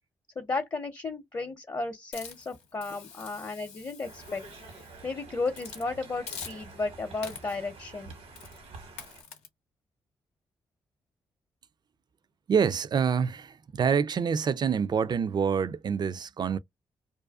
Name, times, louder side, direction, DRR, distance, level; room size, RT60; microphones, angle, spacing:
voice 1, 0.4-4.4 5.0-8.1, left 3 dB, 35° left, 0.6 m, -34 dB
Hiss, 2.1-5.0 5.5-5.9 6.3-6.9 7.2-7.7 8.4-8.6 9.0-9.5, left 6 dB, 90° left, 0.6 m, -45 dB
Conversation, 4.0-9.2, right 3 dB, 80° right, 1.1 m, -48 dB
voice 2, 12.5-16.6, right 6 dB, 45° right, 0.3 m, -26 dB
2.5 x 2.3 x 2.2 m
supercardioid pair, 45°, 10 cm